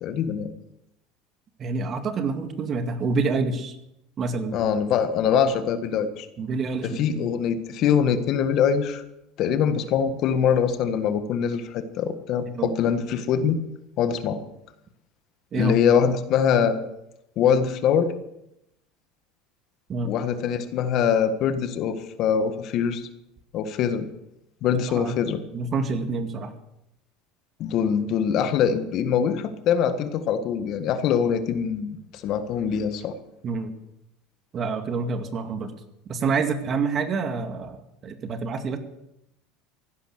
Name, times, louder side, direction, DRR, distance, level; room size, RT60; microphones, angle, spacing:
voice 1, 0.0-0.5 4.5-6.3 6.9-9.0 9.4-13.6 14.0-14.4 15.5-16.9 17.4-18.1 20.0-23.1 23.5-24.0 24.6-25.4 27.6-33.1, left 7 dB, 55° left, 10 dB, 1.6 m, -23 dB
voice 2, 1.6-3.7 4.2-4.6 6.4-7.3 12.5-12.7 15.5-15.7 19.9-20.1 24.9-25.2 25.5-26.5 33.4-33.7 34.5-35.7 36.1-38.8, right 4 dB, 40° right, 7 dB, 2.1 m, -27 dB
16.0 x 11.5 x 6.6 m, 0.83 s
supercardioid pair, 105°, 0 cm